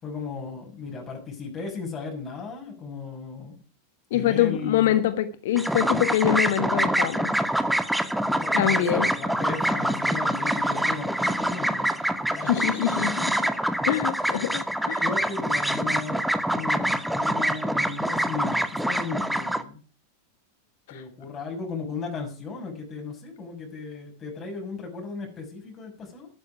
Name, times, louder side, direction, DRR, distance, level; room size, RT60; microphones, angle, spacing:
voice 1, 0.0-3.6 4.1-5.0 8.3-11.9 12.3-12.8 15.0-19.8 20.9-26.3, left 4 dB, 20° left, 1 dB, 6.1 m, -36 dB
voice 2, 4.1-7.3 8.5-9.1 12.4-13.4 13.8-15.0 20.9-21.0, left 12 dB, 55° left, 11 dB, 1.3 m, -25 dB
sound 1, 5.6-19.6, right 1 dB, ahead, 1.2 m, -25 dB
13.5 x 12.0 x 4.8 m, 0.39 s
figure-of-eight pair, 90°, 0 cm